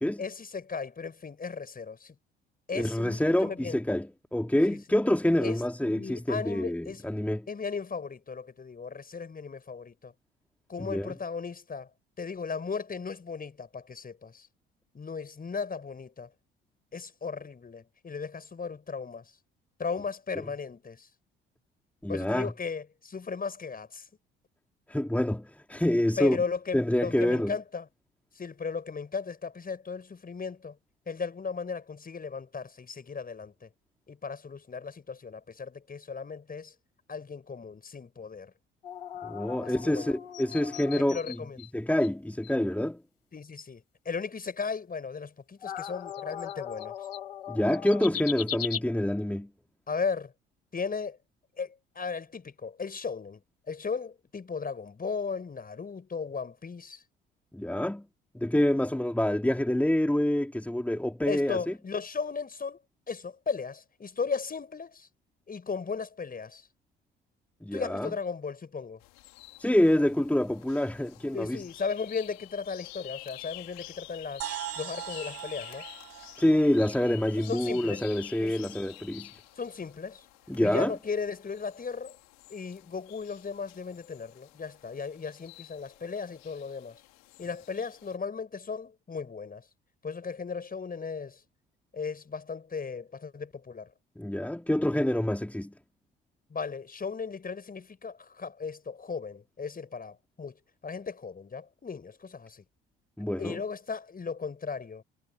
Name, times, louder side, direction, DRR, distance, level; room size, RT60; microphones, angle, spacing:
voice 1, 0.2-2.1 2.7-3.8 4.7-4.8 5.4-5.6 5.9-7.1 7.5-10.1 10.7-11.9 12.2-14.5 14.9-16.3 16.9-19.3 19.8-21.1 22.1-24.1 26.2-27.8 28.4-30.8 31.1-33.7 34.1-36.7 37.1-38.5 39.6-40.1 40.9-41.6 43.3-46.9 49.9-50.3 50.7-51.2 51.6-53.4 53.7-57.0 61.3-62.8 63.1-65.1 65.5-66.6 67.7-69.0 71.3-74.5 74.8-75.9 77.5-78.1 78.4-78.7 79.6-80.3 80.5-82.2 82.5-87.0 87.4-89.6 90.0-91.4 91.9-93.9 96.5-100.6 100.8-102.6 103.4-105.0, left 5 dB, 30° left, 7.0 m, -36 dB
voice 2, 2.7-7.5 10.9-11.2 20.4-20.5 22.0-22.5 24.9-26.4 26.7-27.6 39.2-41.4 41.7-43.0 47.5-49.5 57.5-58.1 58.3-61.7 67.6-68.2 69.6-71.6 76.4-79.3 80.5-80.9 94.2-95.7 103.2-103.6, left 1 dB, 5° left, 3.5 m, -27 dB
sound 1, 38.8-41.7 42.0-42.1 42.4-42.5 45.6-48.8, left 10 dB, 80° left, 4.5 m, -38 dB
sound 2, 69.0-88.2, left 24 dB, 65° left, 3.9 m, -49 dB
sound 3, 74.4-78.2, right 14 dB, 50° right, 2.5 m, -41 dB
figure-of-eight pair, 50°, 29 cm